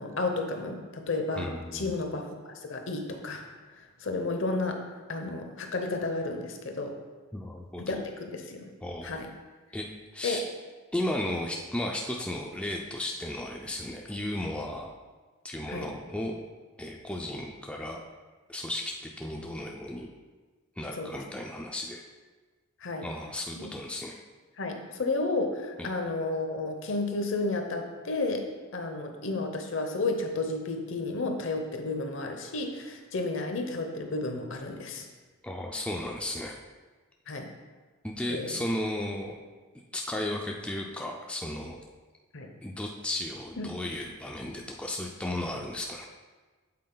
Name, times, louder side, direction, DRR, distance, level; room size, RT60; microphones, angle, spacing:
voice 1, 0.0-3.4 4.0-4.8 5.1-6.9 7.8-8.0 8.3-8.7 9.0-9.3 10.2-10.4 15.7-15.9 21.0-21.1 22.8-23.1 23.5-23.7 24.6-28.4 28.7-35.1 37.3-37.5 38.3-38.5 42.3-42.5 43.6-43.7, left 3 dB, 60° left, 4 dB, 0.8 m, -32 dB
voice 2, 1.4-1.9 7.3-8.0 8.8-9.2 9.7-9.9 10.1-10.4 10.9-14.9 15.4-16.4 16.8-18.0 18.5-20.1 20.8-22.0 23.0-24.1 25.8-25.9 35.4-36.5 38.0-39.4 39.9-41.8 42.6-46.0, left 1 dB, 5° left, 0 dB, 0.3 m, -34 dB
7.6 x 4.1 x 3.8 m, 1.3 s
head